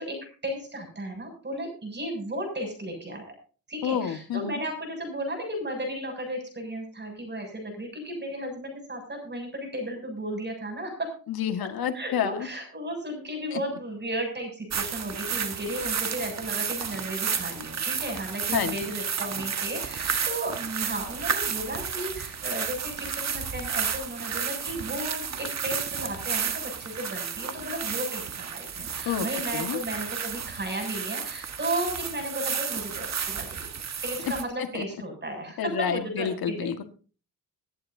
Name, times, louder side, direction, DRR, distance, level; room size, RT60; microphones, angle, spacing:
voice 1, 0.0-3.2 3.7-11.1 11.9-33.7 34.0-36.7, right 1 dB, 30° right, 3 dB, 7.3 m, -34 dB
voice 2, 3.8-4.6 11.3-12.5 13.5-13.6 18.5-18.8 29.1-29.3 29.5-29.8 34.7-34.9 35.6-36.8, left 8 dB, 75° left, 7 dB, 1.8 m, -29 dB
sound 1, 14.7-34.4, right 7 dB, 45° right, 1.5 m, -32 dB
24.0 x 11.0 x 2.7 m, 0.37 s
cardioid pair, 100°, 37 cm